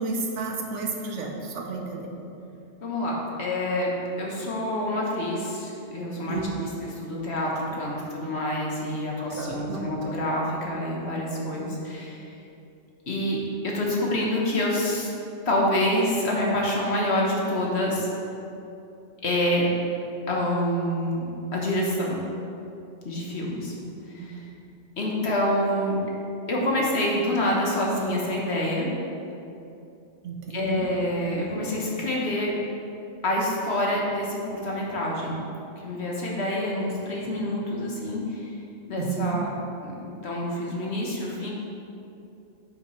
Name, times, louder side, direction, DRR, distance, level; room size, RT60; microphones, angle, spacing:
voice 1, 0.0-2.1 6.3-6.6 9.4-9.8 24.2-24.4 30.2-30.9 39.0-39.4, right 4 dB, 75° right, 1 dB, 1.2 m, -31 dB
voice 2, 2.8-12.2 13.1-15.1 15.4-18.1 19.2-19.7 20.3-22.2 23.0-23.7 24.1-24.4 25.0-26.0 26.5-28.9 30.5-32.5 33.2-35.3 35.8-38.5 38.9-39.5 39.8-41.5, left 1 dB, 60° left, -3 dB, 1.4 m, -27 dB
8.8 x 5.9 x 3.2 m, 2.7 s
omnidirectional pair, 1.3 m